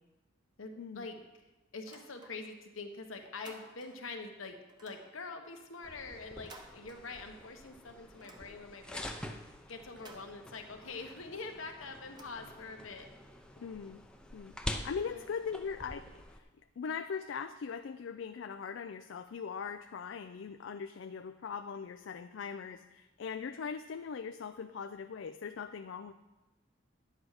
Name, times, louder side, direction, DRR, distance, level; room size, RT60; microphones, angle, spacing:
voice 1, 0.6-1.2 1.7-4.6 4.8-9.1 9.7-13.1 15.0-15.2, left 3 dB, 85° left, 4 dB, 1.2 m, -45 dB
sound 1, 1.8-2.7 3.0-4.2 4.7-7.5 7.9-9.0 9.8-12.9, right 2 dB, 20° right, 1.0 m, -58 dB
sound 2, 5.8-16.4, left 1 dB, 5° left, 0.6 m, -46 dB
voice 2, 13.6-14.0 14.3-14.5 14.8-16.5 16.8-26.1, left 6 dB, 65° left, 9 dB, 0.4 m, -40 dB
11.0 x 8.2 x 4.9 m, 1.1 s
head